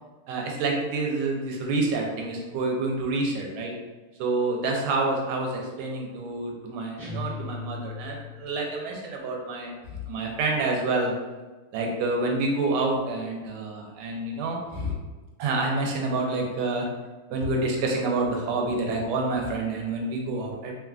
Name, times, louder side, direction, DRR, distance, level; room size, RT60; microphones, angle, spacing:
voice 1, 0.3-3.7 4.2-11.1 11.7-14.9 15.4-16.9 17.3-20.8, right 2 dB, 90° right, 0 dB, 1.5 m, -28 dB
sound 1, 7.0-8.7, left 3 dB, 25° right, 1.1 m, -37 dB
3.6 x 2.3 x 2.3 m, 1.2 s
omnidirectional pair, 2.4 m